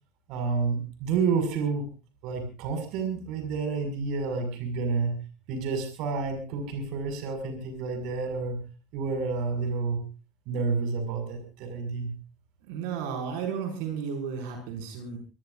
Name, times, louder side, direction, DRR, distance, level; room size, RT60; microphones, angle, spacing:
voice 1, 0.3-1.9 2.2-5.1 5.5-8.6 8.9-10.0 10.5-12.1, right 4 dB, 60° right, 6 dB, 6.1 m, -29 dB
voice 2, 12.7-15.2, right 7 dB, 75° right, 3 dB, 6.0 m, -33 dB
25.0 x 20.0 x 2.6 m, 0.33 s
supercardioid pair, 140°, 0 cm